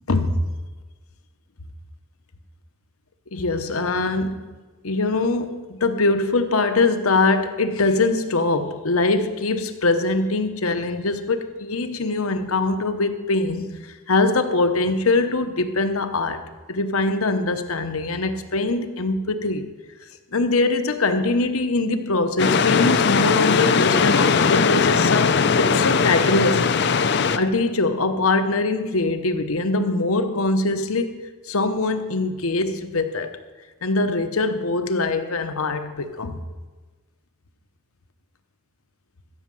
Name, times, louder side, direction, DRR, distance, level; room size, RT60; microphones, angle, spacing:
voice 1, 0.1-0.4 3.3-4.6 4.8-16.4 16.7-19.7 20.3-26.7 27.3-33.3 33.8-36.4, left 3 dB, 85° left, 8 dB, 1.0 m, -22 dB
sound 1, 22.4-27.4, left 5 dB, 55° left, 0.5 m, -19 dB
14.5 x 6.5 x 7.6 m, 1.3 s
head